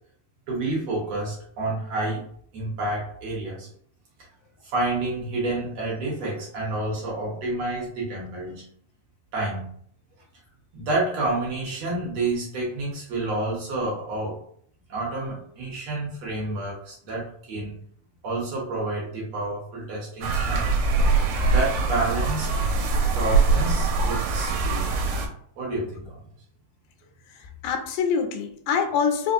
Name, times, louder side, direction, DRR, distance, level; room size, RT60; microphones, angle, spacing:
voice 1, 0.5-2.2 2.5-3.7 4.6-8.6 9.3-9.7 10.7-14.4 14.9-17.7 18.2-20.7 21.4-22.5 23.1-24.9 25.6-26.2, right 2 dB, 65° right, -5 dB, 1.8 m, -29 dB
sound 1, 20.2-25.3, right 3 dB, 90° right, 2.2 m, -23 dB
voice 2, 27.3-29.3, left 6 dB, 85° left, 5 dB, 2.1 m, -25 dB
5.0 x 2.3 x 2.5 m, 0.63 s
omnidirectional pair, 3.7 m